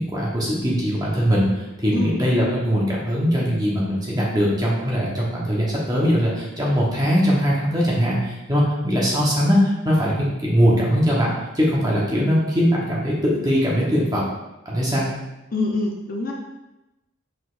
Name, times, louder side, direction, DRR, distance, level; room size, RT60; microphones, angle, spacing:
voice 1, 0.0-1.4 1.8-14.2 14.6-15.1, equal, 20° right, -5 dB, 1.0 m, -21 dB
voice 2, 15.5-16.3, left 2 dB, 40° left, 0 dB, 0.5 m, -25 dB
4.9 x 4.2 x 2.5 m, 0.99 s
head